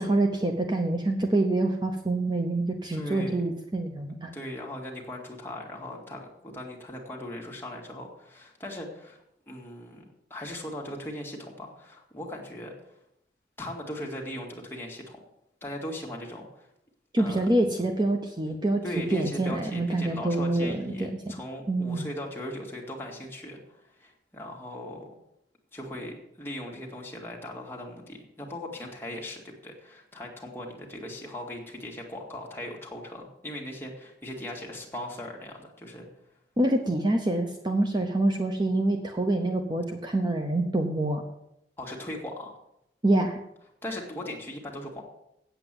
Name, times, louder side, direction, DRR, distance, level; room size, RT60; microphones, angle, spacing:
voice 1, 0.0-4.3 17.1-18.8 19.1-20.9 21.7-22.1 36.6-41.2 43.0-43.4, right 2 dB, 25° right, 4 dB, 0.9 m, -26 dB
voice 2, 2.9-3.5 4.3-10.0 10.3-12.7 13.6-15.2 15.6-16.7 17.2-17.5 18.8-25.1 25.7-36.1 41.8-42.5 43.8-45.0, left 1 dB, 15° left, -1 dB, 2.0 m, -39 dB
8.4 x 8.1 x 7.5 m, 0.80 s
head